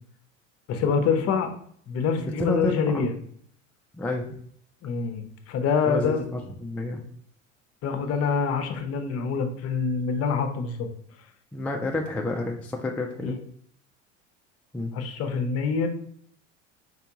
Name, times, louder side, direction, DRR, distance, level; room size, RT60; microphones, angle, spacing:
voice 1, 0.7-1.5 1.9-3.2 4.8-6.2 7.8-10.9 13.2-13.3 14.9-15.9, left 5 dB, 40° left, 7 dB, 0.7 m, -26 dB
voice 2, 2.2-3.1 3.9-4.3 5.9-7.0 11.5-13.4 14.7-14.9, left 2 dB, 5° left, 1 dB, 0.3 m, -30 dB
4.7 x 3.3 x 2.8 m, 0.62 s
figure-of-eight pair, 70°, 38 cm